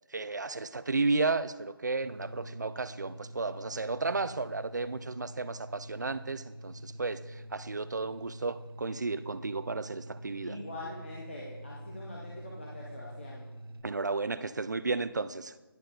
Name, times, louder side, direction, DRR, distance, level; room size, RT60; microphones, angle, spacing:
voice 1, 0.1-10.6 13.8-15.5, right 3 dB, 45° right, 14 dB, 0.4 m, -33 dB
sound 1, 2.0-13.8, right 1 dB, 65° right, 0.8 m, -46 dB
voice 2, 10.4-13.4, left 1 dB, 30° left, -4 dB, 1.0 m, -43 dB
10.5 x 7.0 x 3.9 m, 1.1 s
figure-of-eight pair, 175°, 13 cm